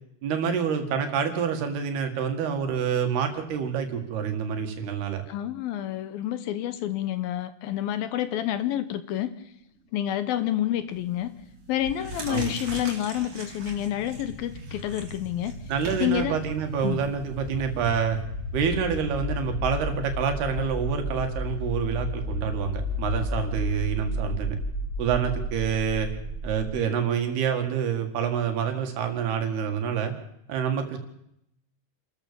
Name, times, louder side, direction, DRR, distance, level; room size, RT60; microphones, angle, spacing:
voice 1, 0.2-5.2 12.3-12.5 15.7-18.2 18.5-24.6 25.0-26.1 26.4-30.1 30.5-31.0, right 7 dB, 75° right, 5 dB, 4.0 m, -27 dB
voice 2, 5.3-9.3 9.9-11.3 11.7-15.6 16.0-16.4 16.8-17.0, left 12 dB, 75° left, 12 dB, 2.5 m, -28 dB
sound 1, 10.9-26.8, left 1 dB, 20° right, 2.4 m, -33 dB
sound 2, 11.0-11.2 11.7-18.2, right 3 dB, 40° right, 4.2 m, -41 dB
27.5 x 14.0 x 7.0 m, 0.78 s
omnidirectional pair, 4.7 m